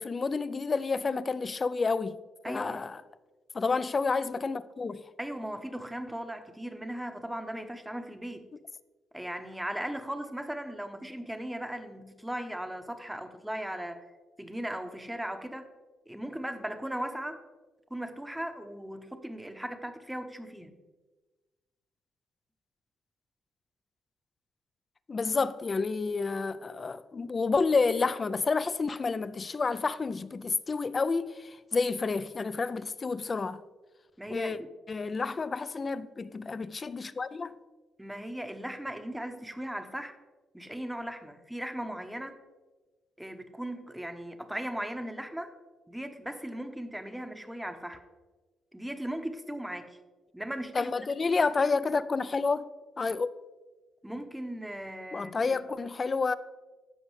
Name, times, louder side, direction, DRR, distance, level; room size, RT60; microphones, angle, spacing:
voice 1, 0.0-2.2 2.5-3.0 3.5-5.0 25.1-33.6 34.3-34.6 34.9-37.6 50.7-52.7 53.0-53.3 55.1-56.3, left 4 dB, 35° left, 0.4 m, -29 dB
voice 2, 2.4-2.9 5.2-8.5 9.1-14.1 14.4-15.7 16.1-17.4 17.9-20.8 34.2-34.7 38.0-40.2 40.5-42.4 43.2-45.5 45.9-48.0 48.7-50.0 50.3-50.9 54.0-55.6, right 1 dB, 5° right, 0.8 m, -38 dB
13.5 x 5.1 x 3.2 m
cardioid pair, 90°, 0 cm